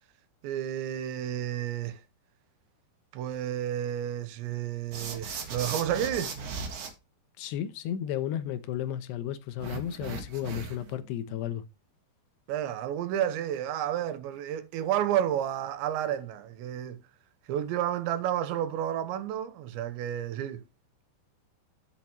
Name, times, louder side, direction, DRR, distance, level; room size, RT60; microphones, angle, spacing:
voice 1, 0.4-2.0 3.1-6.3 12.5-17.0 17.5-20.6, right 11 dB, 90° right, 3.2 m, -31 dB
sound 1, 4.9-6.9 9.6-10.9, right 5 dB, 50° right, 1.9 m, -37 dB
voice 2, 7.4-11.6, left 11 dB, 75° left, 2.8 m, -33 dB
10.0 x 8.1 x 3.0 m
omnidirectional pair, 5.2 m